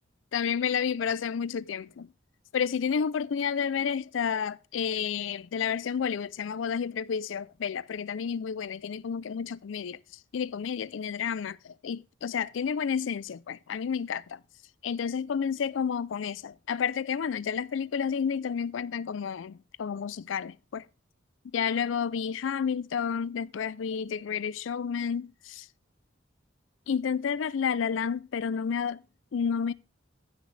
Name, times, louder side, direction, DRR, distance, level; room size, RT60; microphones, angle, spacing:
voice 1, 0.3-2.1 2.5-10.0 10.3-14.4 14.8-20.9 21.5-25.7 26.9-29.0 29.3-29.7, left 7 dB, 90° left, 0.4 m, -30 dB
15.0 x 6.5 x 3.2 m
head